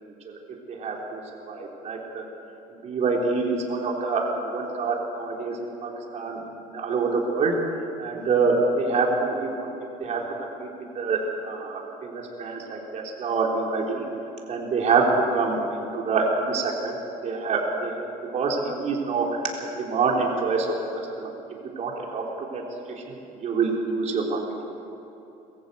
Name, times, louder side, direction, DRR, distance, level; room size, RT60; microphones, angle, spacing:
voice 1, 0.7-1.2 1.5-2.3 2.8-6.4 6.7-7.5 8.0-9.7 10.0-10.2 10.6-10.7 11.0-14.0 14.5-17.0 17.2-18.0 18.3-19.4 19.8-20.7 21.2-21.3 21.8-22.6 23.1-23.2 23.4-24.4, right 4 dB, 45° right, -1 dB, 3.8 m, -26 dB
22.5 x 14.5 x 8.1 m, 2.9 s
cardioid pair, 125°, 16 cm